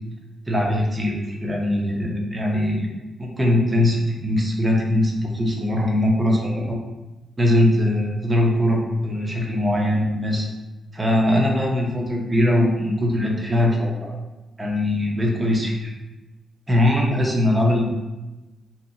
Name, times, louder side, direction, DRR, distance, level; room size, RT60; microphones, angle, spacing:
voice 1, 0.5-2.9 3.2-6.8 7.4-10.5 10.9-14.1 14.6-15.9 16.7-17.9, left 1 dB, 20° right, -1 dB, 0.6 m, -21 dB
2.8 x 2.4 x 2.6 m, 1.1 s
cardioid pair, 105°, 0 cm